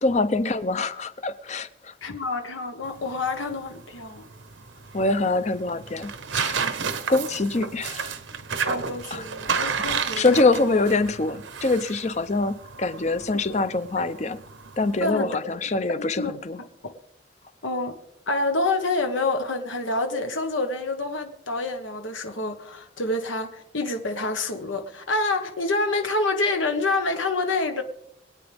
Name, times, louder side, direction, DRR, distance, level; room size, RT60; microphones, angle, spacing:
voice 1, 0.0-1.9 4.9-6.6 7.1-8.1 9.1-9.3 10.2-14.4 14.8-16.6, left 3 dB, 35° left, 0.6 m, -24 dB
voice 2, 2.0-4.2 8.7-10.2 10.6-10.8 13.3-13.6 14.0-14.1 15.0-15.6 16.0-16.4 17.6-17.9 18.3-27.8, left 2 dB, 85° left, 1.4 m, -27 dB
sound 1, 2.8-15.1, right 6 dB, 85° right, 1.0 m, -32 dB
23.5 x 8.8 x 3.5 m
head